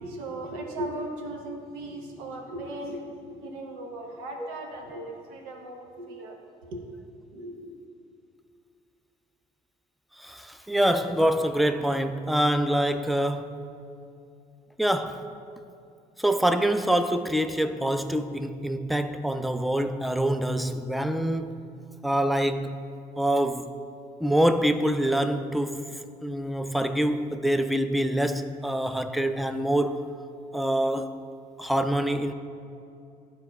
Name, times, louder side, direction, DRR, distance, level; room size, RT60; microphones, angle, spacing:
voice 1, 0.0-6.8 7.3-7.8, right 1 dB, 90° right, 0.8 m, -37 dB
voice 2, 10.2-13.6 14.8-15.2 16.2-21.6 22.0-22.9 23.2-23.8 24.2-30.0 30.5-31.2 31.6-32.3, right 1 dB, ahead, 0.4 m, -25 dB
11.5 x 4.5 x 2.2 m
hypercardioid pair, 60°, 18 cm